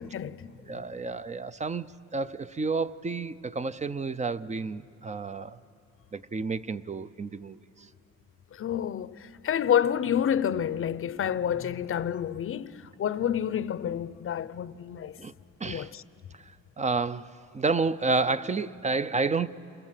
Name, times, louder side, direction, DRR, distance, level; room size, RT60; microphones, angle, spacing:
voice 1, 0.0-0.5 8.5-15.2 15.6-16.0, left 9 dB, 45° left, 0.7 m, -29 dB
voice 2, 0.6-5.6 6.1-7.9 15.2-15.3 15.6-15.9 16.8-19.5, right 4 dB, 25° right, 0.5 m, -30 dB
28.0 x 21.5 x 7.6 m
cardioid pair, 90°, 30 cm